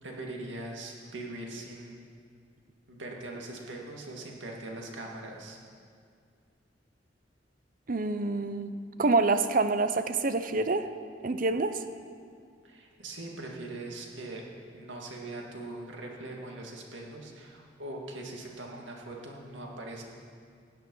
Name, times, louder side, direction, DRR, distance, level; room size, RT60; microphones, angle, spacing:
voice 1, 0.0-2.0 2.9-5.6 12.6-14.5 14.7-20.0, right 2 dB, 85° right, 0 dB, 2.1 m, -41 dB
voice 2, 7.9-8.7 9.0-10.9 11.2-11.8, right 3 dB, 50° right, 10 dB, 0.7 m, -26 dB
16.0 x 9.2 x 5.5 m, 2.2 s
head